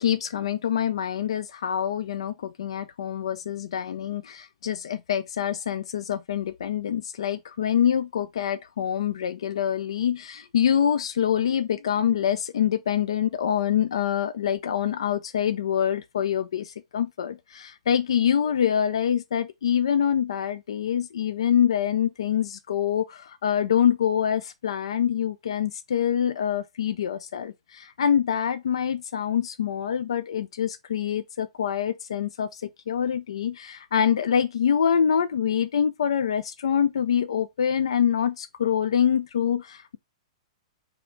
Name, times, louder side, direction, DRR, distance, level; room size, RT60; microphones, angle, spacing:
voice 1, 0.0-32.6 32.9-40.0, left 8 dB, 70° left, 0.3 m, -25 dB
4.2 x 2.8 x 3.7 m
figure-of-eight pair, 110°, 3 cm